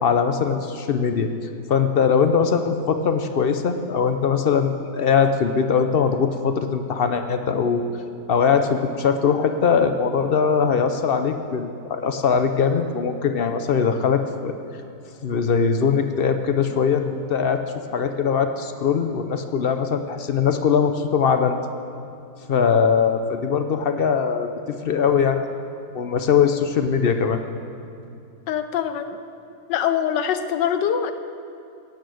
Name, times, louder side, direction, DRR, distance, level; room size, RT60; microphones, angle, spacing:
voice 1, 0.0-1.3 1.7-7.8 8.3-14.6 15.2-17.6 17.9-21.6 22.5-24.5 24.8-25.4 25.9-27.4, left 6 dB, 60° left, 8 dB, 0.5 m, -21 dB
voice 2, 28.5-29.2 29.7-31.1, left 9 dB, 85° left, 9 dB, 1.4 m, -23 dB
15.5 x 9.0 x 7.8 m, 2.6 s
omnidirectional pair, 1.9 m